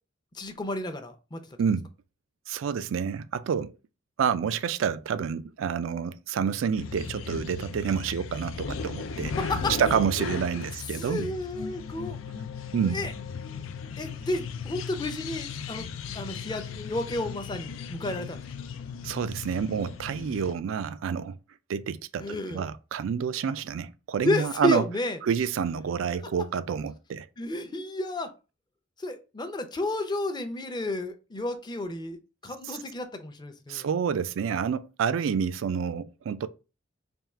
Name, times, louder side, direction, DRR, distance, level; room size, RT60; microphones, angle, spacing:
voice 1, 0.3-1.4 9.3-9.8 10.9-12.2 12.9-13.1 14.0-15.9 16.1-18.4 22.2-22.7 24.2-25.2 27.4-28.3 29.0-32.2 32.4-33.9, left 2 dB, 20° left, 0.5 m, -31 dB
voice 2, 2.5-3.8 4.2-9.3 9.8-11.3 12.7-13.1 19.0-21.4 21.7-24.8 25.2-27.3 32.6-32.8 33.7-36.5, right 7 dB, 80° right, 0.3 m, -28 dB
sound 1, 6.8-20.6, left 5 dB, 85° left, 0.4 m, -37 dB
3.5 x 2.3 x 4.3 m
head